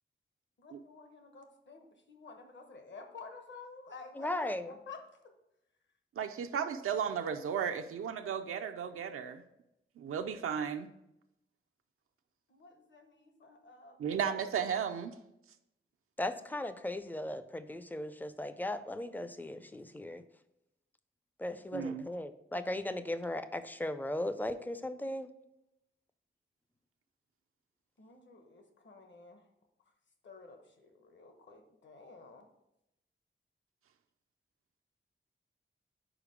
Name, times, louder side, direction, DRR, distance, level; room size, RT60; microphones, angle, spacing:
voice 1, 0.6-5.3 6.5-6.7 12.5-14.4 28.0-29.5 30.2-32.5, left 4 dB, 60° left, 5 dB, 1.0 m, -52 dB
voice 2, 4.2-4.7 16.2-20.2 21.4-25.3, left 1 dB, 10° left, 11 dB, 0.4 m, -37 dB
voice 3, 6.2-9.4 10.0-10.9 14.0-15.1 21.7-22.1, right 7 dB, 90° right, 6 dB, 0.4 m, -34 dB
5.0 x 4.6 x 5.0 m, 0.86 s
wide cardioid pair, 110°, 21 cm